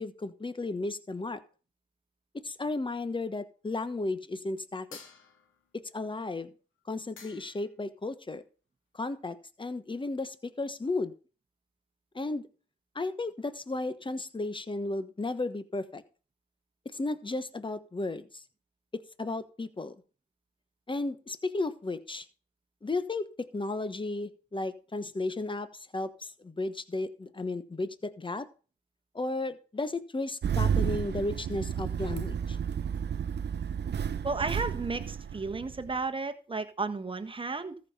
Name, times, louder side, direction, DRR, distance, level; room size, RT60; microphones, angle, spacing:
voice 1, 0.0-1.4 2.4-5.0 5.9-6.5 6.9-8.4 8.9-11.1 12.1-12.5 12.9-16.0 16.8-18.4 18.9-19.9 20.9-22.3 22.8-28.5 29.1-32.6, left 2 dB, 25° left, 1.2 m, -34 dB
sound 1, 4.9-5.7 6.8-6.9 7.2-7.7, left 5 dB, 80° left, 2.4 m, -50 dB
Engine starting, 30.4-36.0, right 8 dB, 55° right, 0.7 m, -31 dB
voice 2, 34.2-37.8, right 3 dB, 25° right, 1.4 m, -33 dB
14.0 x 5.4 x 5.6 m
supercardioid pair, 55°, 20 cm